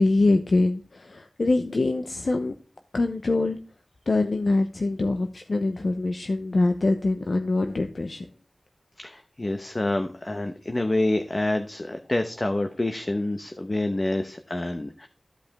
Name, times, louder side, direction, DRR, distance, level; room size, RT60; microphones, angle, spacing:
voice 1, 0.0-2.5 2.9-3.6 4.1-8.3, left 2 dB, 65° left, 6 dB, 0.9 m, -24 dB
voice 2, 9.0-15.1, left 2 dB, 40° left, 6 dB, 0.9 m, -27 dB
14.0 x 5.1 x 3.5 m, 0.37 s
wide cardioid pair, 50°, 0 cm